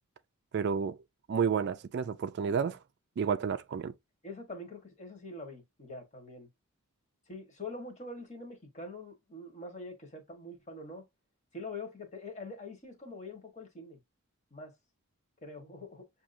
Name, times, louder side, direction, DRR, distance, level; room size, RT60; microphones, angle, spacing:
voice 1, 0.5-1.0 1.3-2.8 3.2-3.9, right 6 dB, 50° right, 0.3 m, -30 dB
voice 2, 4.2-6.5 7.3-11.1 11.5-14.0 14.5-14.7 15.4-16.1, left 2 dB, 30° left, 1.3 m, -44 dB
7.2 x 2.7 x 2.6 m
head